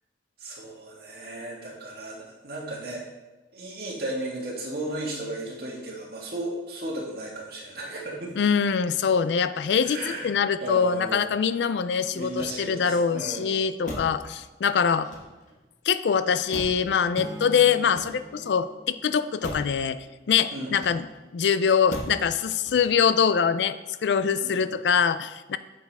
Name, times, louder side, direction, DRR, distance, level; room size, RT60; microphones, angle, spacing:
voice 1, 0.4-3.0 3.5-8.4 9.8-10.3 10.6-11.3 12.1-13.6 20.5-20.7 24.4-24.6, right 2 dB, 60° right, -3 dB, 1.9 m, -34 dB
voice 2, 8.4-15.1 15.8-20.0 20.3-21.1 21.3-25.6, left 7 dB, 75° left, 13 dB, 0.4 m, -24 dB
Motor vehicle (road), 12.2-13.0 13.8-14.3 15.0-15.6 16.5-17.0 17.7-18.5 19.4-19.8 20.7-21.3 21.9-22.3 22.6-23.1, equal, 45° left, 1.3 m, -39 dB
sound 1, 17.1-20.0, right 1 dB, 20° right, 0.4 m, -42 dB
8.2 x 7.2 x 3.5 m, 1.1 s
head